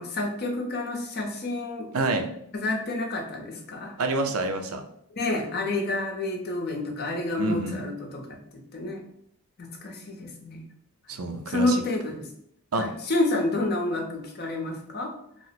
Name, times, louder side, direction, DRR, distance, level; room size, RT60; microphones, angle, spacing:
voice 1, 0.0-1.9 2.5-3.9 5.2-8.4 8.7-9.0 9.6-10.7 11.5-12.3 12.8-15.1, left 2 dB, 45° left, 1 dB, 0.7 m, -29 dB
voice 2, 1.9-2.3 4.0-4.8 7.4-7.8 11.1-11.8 12.7-12.9, right 2 dB, 70° right, 5 dB, 0.5 m, -27 dB
2.9 x 2.1 x 4.0 m, 0.70 s
head